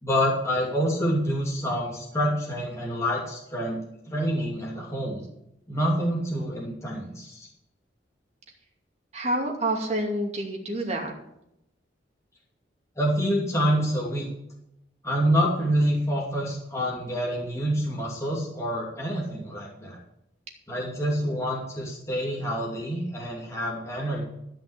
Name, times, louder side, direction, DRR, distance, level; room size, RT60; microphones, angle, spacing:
voice 1, 0.0-3.8 4.1-5.2 5.7-7.5 13.0-14.3 15.0-20.0 20.7-24.2, equal, 15° left, -4 dB, 2.7 m, -27 dB
voice 2, 9.1-11.1, right 1 dB, 40° right, 1 dB, 2.5 m, -28 dB
13.5 x 5.8 x 8.2 m, 0.79 s
head